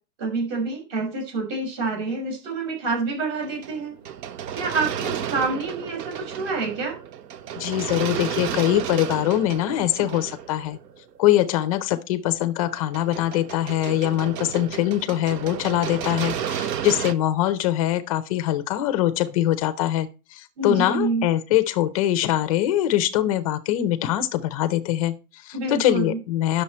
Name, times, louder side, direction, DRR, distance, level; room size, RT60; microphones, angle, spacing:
voice 1, 0.2-4.0 4.5-7.0 20.6-21.3 25.5-26.2, right 3 dB, 40° right, 6.0 m, -27 dB
sound 1, 3.4-11.3 12.7-17.1, right 9 dB, 80° right, 1.1 m, -32 dB
voice 2, 7.6-10.8 11.2-26.6, left 13 dB, 25° left, 0.4 m, -23 dB
11.0 x 6.7 x 4.3 m
supercardioid pair, 160°, 49 cm